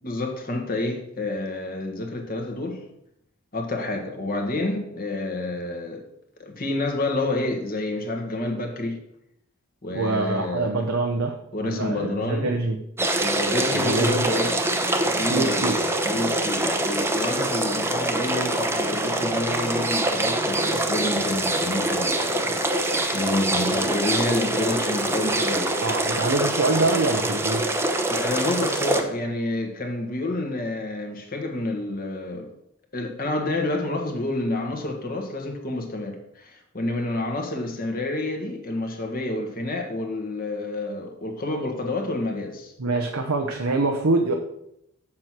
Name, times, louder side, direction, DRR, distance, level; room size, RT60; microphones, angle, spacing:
voice 1, 0.0-2.8 3.5-6.0 6.4-9.0 9.8-10.8 11.5-12.5 13.2-14.5 15.0-15.7 16.0-25.8 28.1-32.5 32.9-42.7, left 2 dB, 45° left, 1.6 m, -29 dB
voice 2, 9.9-12.8 13.7-14.3 15.3-15.8 25.8-27.8 42.8-44.3, right 2 dB, 85° right, 0.9 m, -25 dB
sound 1, 13.0-29.0, right 1 dB, 10° right, 0.8 m, -24 dB
7.6 x 6.3 x 6.0 m
head